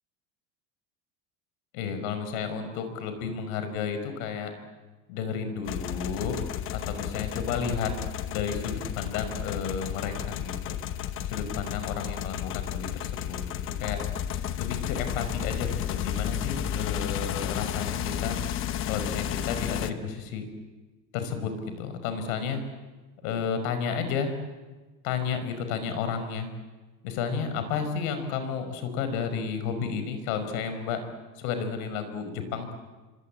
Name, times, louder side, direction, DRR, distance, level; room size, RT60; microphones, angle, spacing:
voice 1, 1.7-4.5 5.1-6.4 6.7-7.9 8.3-10.8 11.2-14.0 14.6-18.4 18.9-20.4 21.1-22.6 23.2-24.3 25.0-26.5 27.0-31.0 31.4-32.7, left 6 dB, 70° left, 9 dB, 5.6 m, -32 dB
sound 1, 5.6-19.9, left 10 dB, 30° left, 1.1 m, -32 dB
27.0 x 25.0 x 8.8 m, 1.3 s
cardioid pair, 175°, 43 cm